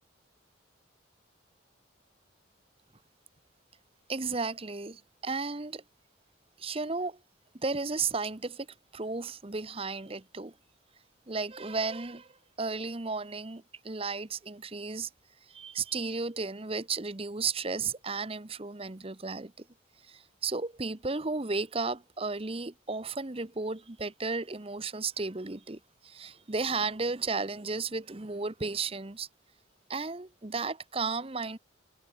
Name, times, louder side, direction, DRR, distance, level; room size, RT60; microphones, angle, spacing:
voice 1, 4.1-5.8 6.6-7.2 7.5-8.7 8.9-10.5 11.3-12.3 12.6-15.1 15.5-19.6 20.0-29.3 29.9-31.6, right 4 dB, 30° right, 1.0 m, -34 dB
head